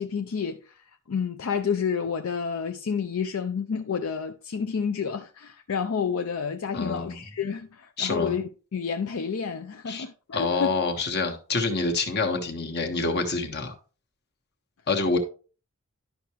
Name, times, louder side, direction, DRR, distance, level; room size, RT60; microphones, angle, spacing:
voice 1, 0.0-10.8, left 6 dB, 70° left, 0.5 m, -30 dB
voice 2, 6.7-7.2 8.0-8.3 9.9-10.0 10.3-13.7 14.9-15.2, left 3 dB, 50° left, 1.4 m, -27 dB
11.0 x 5.8 x 3.0 m
head